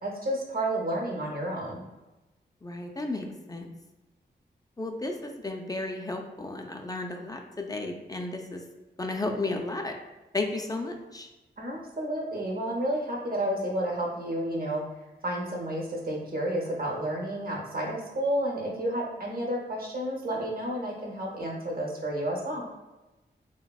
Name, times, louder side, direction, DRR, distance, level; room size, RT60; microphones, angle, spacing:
voice 1, 0.0-1.8 11.6-14.8 15.2-22.6, right 1 dB, 50° right, -1 dB, 0.7 m, -31 dB
voice 2, 2.6-3.7 4.8-8.6 9.0-9.9 10.3-11.3, left 2 dB, 20° left, 3 dB, 0.3 m, -33 dB
3.3 x 2.1 x 2.3 m, 1.1 s
cardioid pair, 50°, 19 cm